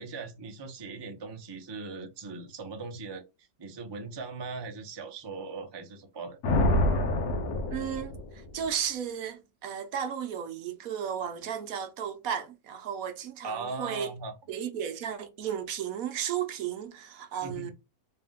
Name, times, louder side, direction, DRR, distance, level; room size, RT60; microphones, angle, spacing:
voice 1, 0.0-6.4 13.4-14.3 17.4-17.7, right 4 dB, 35° right, 0.4 m, -39 dB
Thunder, 6.4-8.6, left 1 dB, 75° left, 1.3 m, -27 dB
voice 2, 7.7-14.1 14.5-17.7, right 8 dB, 70° right, 1.0 m, -34 dB
3.4 x 2.8 x 3.5 m
omnidirectional pair, 1.7 m